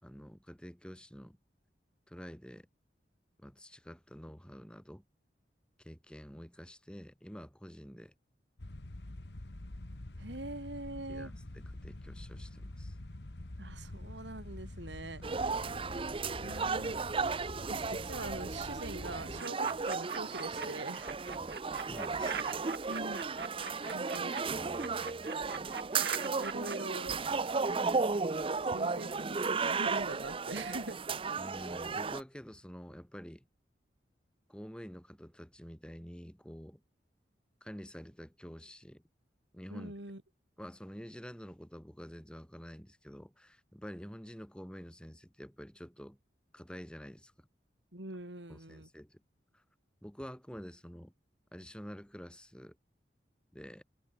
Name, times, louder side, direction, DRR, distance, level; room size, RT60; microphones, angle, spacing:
voice 1, 0.0-1.4 2.1-2.7 3.4-5.0 5.8-8.1 11.1-13.0 19.7-19.8 21.4-22.6 23.8-24.0 24.5-25.3 31.4-33.5 34.5-36.8 37.6-39.0 39.5-39.9 40.6-46.2 46.5-47.5 48.5-49.2 49.5-49.6 50.0-51.1 51.5-52.8 53.5-53.8, equal, 5° left, 3.9 m, -48 dB
sound 1, 8.6-19.4, left 1 dB, 70° left, 1.5 m, -46 dB
voice 2, 10.2-11.4 13.6-15.2 16.4-17.0 17.7-21.2 22.9-23.2 23.9-24.3 26.0-27.3 28.6-31.0 39.7-40.2 47.9-48.9, right 2 dB, 85° right, 3.9 m, -43 dB
sound 2, 15.2-32.2, right 4 dB, 30° right, 0.6 m, -34 dB
sound 3, 19.4-20.7 21.0-24.4 24.8-26.8, right 5 dB, 65° right, 1.7 m, -42 dB
head